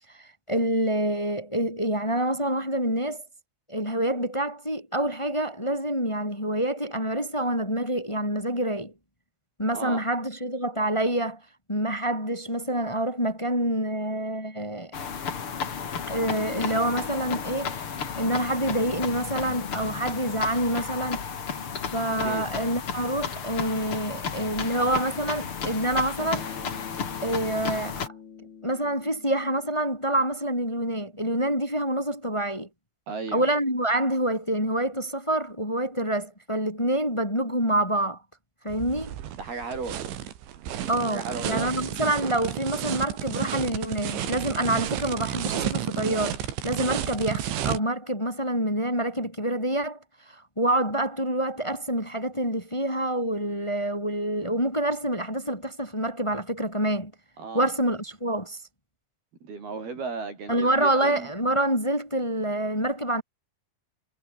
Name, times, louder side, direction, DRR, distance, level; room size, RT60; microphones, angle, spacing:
voice 1, 0.1-3.2 3.7-8.9 9.6-11.4 11.7-14.9 16.1-17.7 18.1-21.2 21.9-26.7 27.2-28.1 28.6-32.7 33.3-38.2 38.6-39.1 40.9-50.0 50.3-57.1 57.5-58.6 60.5-63.2, right 1 dB, 5° left, 5.9 m, -27 dB
voice 2, 9.7-10.1 22.2-22.4 33.1-33.5 39.3-40.0 41.1-41.8 57.4-57.7 59.4-61.3, right 4 dB, 55° right, 7.7 m, -35 dB
sound 1, 14.9-28.1, left 6 dB, 40° left, 2.5 m, -33 dB
Bass guitar, 26.2-30.6, left 6 dB, 75° left, 7.1 m, -44 dB
sound 2, 38.7-47.8, right 11 dB, 80° right, 4.8 m, -31 dB
omnidirectional pair, 5.2 m